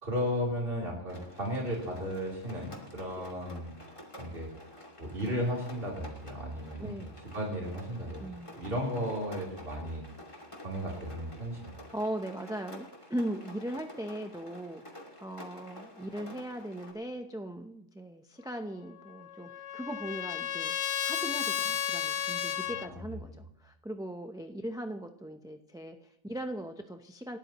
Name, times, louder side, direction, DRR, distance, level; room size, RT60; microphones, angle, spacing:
voice 1, 0.0-3.7 4.2-4.5 5.0-7.0 7.3-8.3 8.5-10.0 10.6-11.9 22.8-23.0, equal, 50° right, -4 dB, 3.7 m, -34 dB
Rain, 1.1-16.9, left 1 dB, 25° left, 2.5 m, -50 dB
voice 2, 6.8-7.2 8.2-8.7 11.9-27.4, right 1 dB, 5° right, 5 dB, 0.6 m, -39 dB
Trumpet, 19.0-22.9, left 10 dB, 75° left, 1.0 m, -33 dB
28.0 x 12.5 x 3.0 m, 0.81 s
omnidirectional pair, 1.2 m